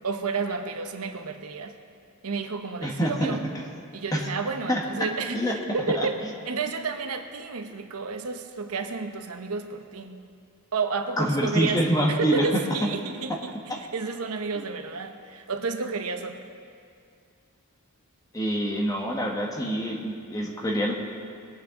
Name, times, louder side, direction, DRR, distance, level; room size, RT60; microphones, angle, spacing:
voice 1, 0.0-1.7 2.2-3.5 3.9-5.4 5.7-10.3 10.7-13.5 13.9-16.4, right 4 dB, 75° right, 6 dB, 0.9 m, -31 dB
voice 2, 2.8-3.4 4.1-4.3 4.7-4.8 5.3-5.6 5.9-6.3 11.2-12.6 13.3-13.4 14.5-14.6 18.3-20.9, equal, 15° left, -1 dB, 1.3 m, -26 dB
21.0 x 8.9 x 3.8 m, 2.3 s
head